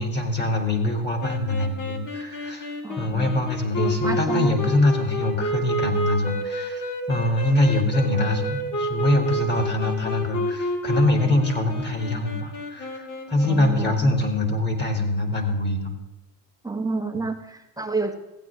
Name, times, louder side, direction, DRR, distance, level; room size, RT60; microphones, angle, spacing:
voice 1, 0.0-15.9, left 1 dB, 20° left, 4 dB, 2.9 m, -24 dB
sound 1, 1.2-13.8, equal, 40° left, 2.6 m, -30 dB
voice 2, 2.8-3.4 3.8-4.5 13.4-13.9 16.6-18.1, right 3 dB, 10° right, 3 dB, 1.2 m, -29 dB
15.5 x 9.1 x 3.6 m, 0.99 s
supercardioid pair, 90°, 47 cm